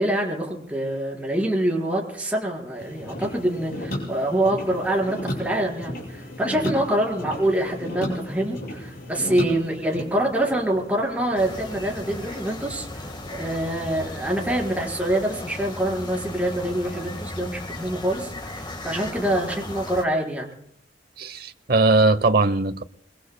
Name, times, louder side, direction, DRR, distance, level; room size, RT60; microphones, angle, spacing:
voice 1, 0.0-20.5, right 1 dB, 10° right, 4.5 m, -25 dB
sound 1, 2.8-13.4, left 1 dB, 55° left, 6.6 m, -35 dB
sound 2, 11.4-20.1, left 1 dB, 25° left, 1.6 m, -36 dB
voice 2, 21.2-22.8, right 3 dB, 60° right, 0.9 m, -20 dB
27.0 x 23.0 x 2.2 m
head